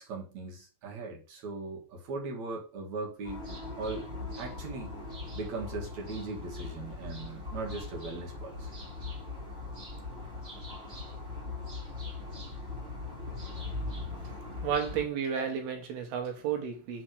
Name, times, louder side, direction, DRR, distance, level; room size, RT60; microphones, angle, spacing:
voice 1, 0.0-3.4 3.8-4.1 4.4-5.0 5.3-8.7, right 3 dB, 55° right, 2.1 m, -39 dB
sound 1, 3.2-15.0, left 3 dB, 20° right, 1.6 m, -40 dB
voice 2, 14.6-17.0, right 7 dB, 75° right, 2.7 m, -32 dB
6.2 x 4.3 x 6.4 m
omnidirectional pair, 5.0 m